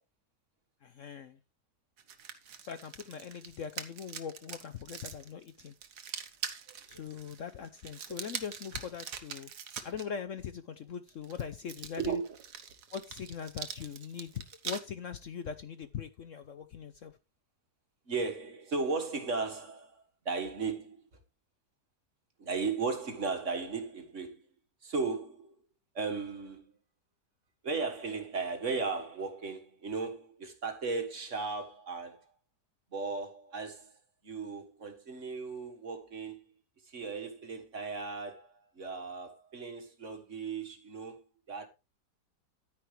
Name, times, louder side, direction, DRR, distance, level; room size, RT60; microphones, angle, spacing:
voice 1, 0.8-1.4 2.6-5.7 6.9-9.5 9.8-12.2 12.9-17.2, left 7 dB, 60° left, 1.0 m, -41 dB
sound 1, 2.0-10.0 11.1-14.8, right 7 dB, 70° right, 1.7 m, -43 dB
voice 2, 6.7-7.1 12.0-12.4 18.1-21.0 22.4-24.4 24.8-25.6 25.9-26.7 27.6-32.3 32.9-34.0 34.2-36.4 36.8-41.7, right 4 dB, 45° right, 1.9 m, -36 dB
10.5 x 9.8 x 3.3 m
omnidirectional pair, 1.8 m